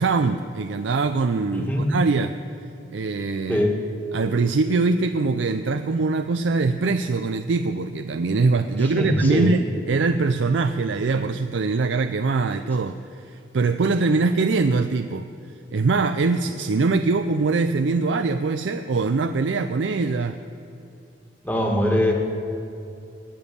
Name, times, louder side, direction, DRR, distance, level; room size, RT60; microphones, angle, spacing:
voice 1, 0.0-2.4 2.9-3.6 4.1-15.2 15.7-20.4, right 3 dB, 90° right, 8 dB, 0.5 m, -22 dB
voice 2, 1.5-1.9 3.5-3.8 8.8-9.5 21.4-22.1, equal, 10° left, 0 dB, 1.9 m, -22 dB
19.5 x 7.2 x 6.9 m, 2.7 s
head